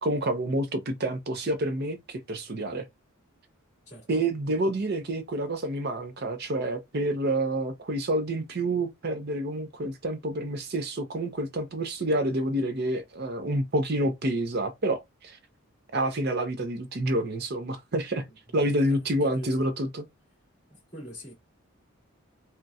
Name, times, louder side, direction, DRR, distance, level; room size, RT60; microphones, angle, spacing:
voice 1, 0.0-2.9 4.1-15.4 15.9-18.2 18.5-20.0, right 1 dB, 50° right, 0.6 m, -28 dB
voice 2, 3.9-4.3 18.5-19.0 19.2-19.5 20.7-21.3, equal, 35° left, 2.1 m, -44 dB
3.9 x 2.2 x 2.4 m
head